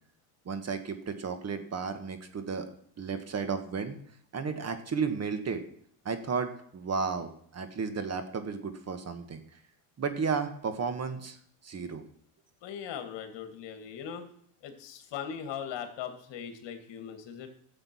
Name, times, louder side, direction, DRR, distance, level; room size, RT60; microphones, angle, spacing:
voice 1, 0.4-2.7 3.0-4.0 4.3-5.6 6.0-9.4 10.0-11.4 11.6-12.0, right 5 dB, 30° right, 9 dB, 1.4 m, -33 dB
voice 2, 12.6-14.3 14.6-17.5, left 8 dB, 60° left, 7 dB, 2.3 m, -39 dB
12.5 x 7.7 x 6.2 m, 0.64 s
supercardioid pair, 105°, 49 cm